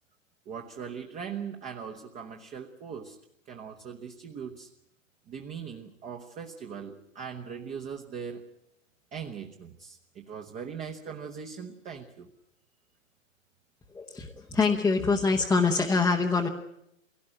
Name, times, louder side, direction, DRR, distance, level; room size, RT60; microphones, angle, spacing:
voice 1, 0.5-3.2 3.5-4.7 5.3-8.5 9.1-12.3, right 7 dB, 20° right, 3 dB, 1.0 m, -40 dB
voice 2, 13.9-16.5, left 4 dB, 5° left, -1 dB, 0.9 m, -25 dB
22.5 x 17.0 x 9.9 m, 0.81 s
hypercardioid pair, 140°, 39 cm